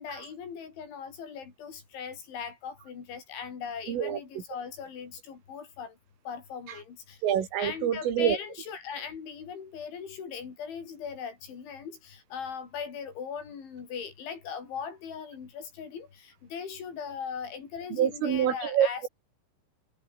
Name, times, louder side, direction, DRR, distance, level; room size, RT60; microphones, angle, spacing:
voice 1, 0.0-6.0 6.3-7.2 7.6-19.0, left 6 dB, 70° left, 7.4 m, -39 dB
voice 2, 3.9-4.2 7.2-8.4 17.9-19.1, right 9 dB, 85° right, 5.6 m, -26 dB
omnidirectional pair, 5.6 m